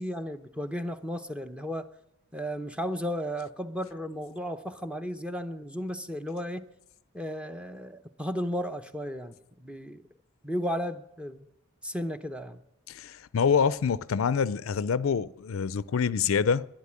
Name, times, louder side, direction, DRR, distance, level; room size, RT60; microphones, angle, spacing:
voice 1, 0.0-1.9 2.3-6.7 7.1-10.0 10.4-11.5 11.8-12.6, equal, 5° right, 0.7 m, -34 dB
voice 2, 12.9-16.7, left 6 dB, 75° left, 0.5 m, -26 dB
12.0 x 10.5 x 9.6 m
head